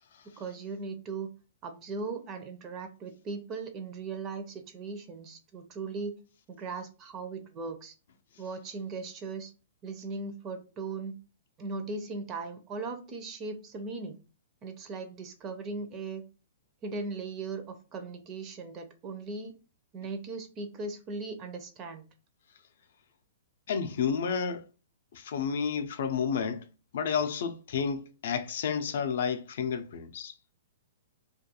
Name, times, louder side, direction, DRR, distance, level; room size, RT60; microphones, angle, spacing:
voice 1, 0.4-1.3 1.6-6.1 6.5-7.9 8.4-9.5 9.8-11.1 11.6-14.2 14.6-16.2 16.8-19.5 19.9-22.1, right 4 dB, 25° right, 0.4 m, -38 dB
voice 2, 23.7-24.7 25.1-26.7 26.9-30.3, left 6 dB, 65° left, 0.3 m, -31 dB
2.3 x 2.2 x 2.7 m
hypercardioid pair, 155°, 0 cm